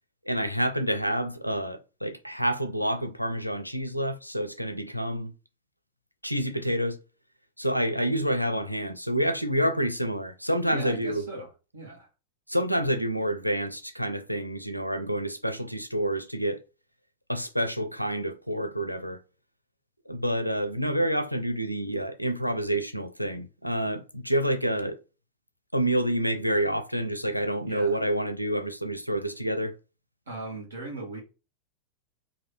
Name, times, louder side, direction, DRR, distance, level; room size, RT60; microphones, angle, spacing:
voice 1, 0.3-5.3 6.2-7.0 7.6-11.3 12.5-16.6 17.3-19.2 20.1-25.0 25.7-29.7, right 1 dB, 90° left, 0.5 m, -28 dB
voice 2, 10.7-12.1 27.6-28.0 30.3-31.2, right 2 dB, 70° right, 1.5 m, -38 dB
3.1 x 2.7 x 4.2 m
figure-of-eight pair, 90°, 0 cm